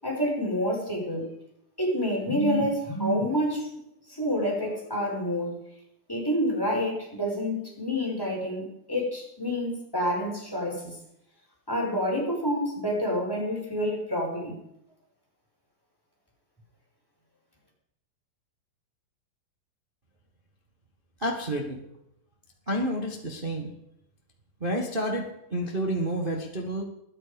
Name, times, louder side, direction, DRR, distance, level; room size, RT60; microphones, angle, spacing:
voice 1, 0.0-1.3 1.8-3.7 4.1-5.6 6.1-11.0 11.7-14.6, equal, 5° left, -2 dB, 5.4 m, -28 dB
voice 2, 21.2-21.8 22.7-23.7 24.6-26.8, right 1 dB, 70° right, 0 dB, 0.5 m, -29 dB
21.0 x 10.0 x 5.3 m, 0.79 s
omnidirectional pair, 4.2 m